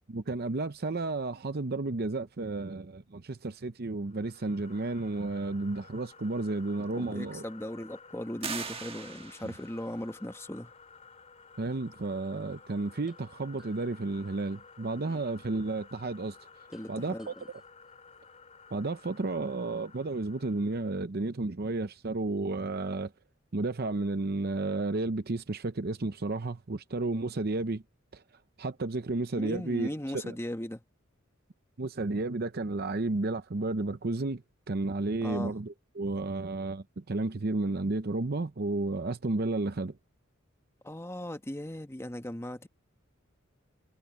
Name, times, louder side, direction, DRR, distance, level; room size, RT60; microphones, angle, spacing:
voice 1, 0.1-7.4 9.4-9.5 11.6-16.4 16.9-17.3 18.7-23.1 23.5-27.8 28.1-28.2 28.6-30.4 31.8-40.0, right 2 dB, 50° right, 0.7 m, -32 dB
sound 1, 4.0-21.0, left 5 dB, 35° left, 2.4 m, -54 dB
voice 2, 6.9-10.7 15.1-15.2 16.7-17.4 29.4-30.8 35.2-35.6 40.8-42.7, left 1 dB, 15° left, 1.2 m, -38 dB
sound 2, 8.4-9.8, right 5 dB, 30° right, 1.3 m, -39 dB
sound 3, 13.1-13.2 13.6-14.8 16.7-18.7, equal, ahead, 6.8 m, -66 dB
head